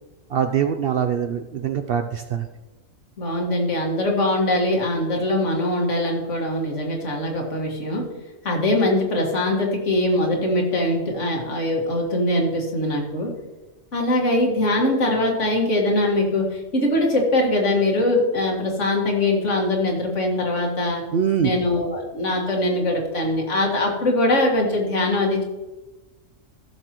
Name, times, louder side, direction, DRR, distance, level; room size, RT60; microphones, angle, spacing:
voice 1, 0.3-2.5 21.1-21.5, right 8 dB, 60° right, 7 dB, 0.6 m, -23 dB
voice 2, 3.2-8.1 8.4-13.3 13.9-21.0 21.4-25.4, left 1 dB, 65° left, 0 dB, 2.1 m, -22 dB
15.0 x 6.7 x 3.0 m, 1.1 s
omnidirectional pair, 1.3 m